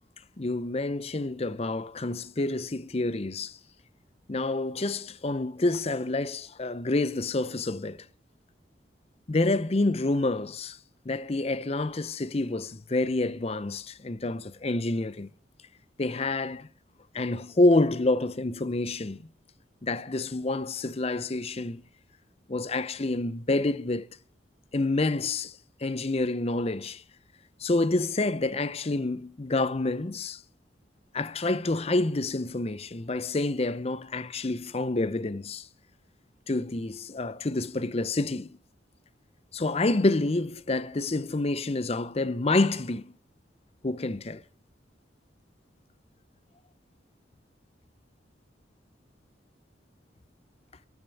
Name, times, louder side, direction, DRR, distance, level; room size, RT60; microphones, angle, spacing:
voice 1, 0.4-3.6 4.3-8.0 9.3-10.8 11.1-15.3 16.0-16.7 17.1-19.2 19.8-21.8 22.5-24.1 24.7-25.5 25.8-27.0 27.6-30.4 31.1-35.7 36.5-38.6 39.5-43.1 43.8-44.4, left 2 dB, 35° left, 0.6 m, -28 dB
13.5 x 11.0 x 6.9 m
head